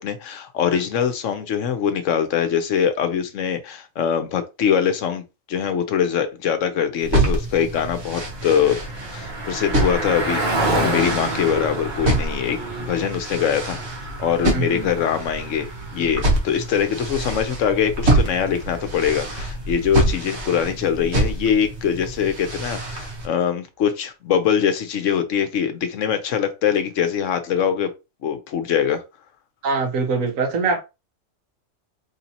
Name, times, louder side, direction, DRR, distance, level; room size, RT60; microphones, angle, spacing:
voice 1, 0.0-8.8 9.1-13.8 14.2-15.7 15.9-27.9 28.2-29.0, left 8 dB, 70° left, 1.0 m, -23 dB
sound 1, 7.0-23.3, right 1 dB, 55° right, 1.4 m, -26 dB
Car passing by, 7.6-19.3, right 2 dB, 35° right, 1.5 m, -30 dB
voice 2, 14.5-14.9 29.6-30.8, right 4 dB, 75° right, 1.3 m, -23 dB
4.2 x 3.2 x 2.8 m
omnidirectional pair, 1.4 m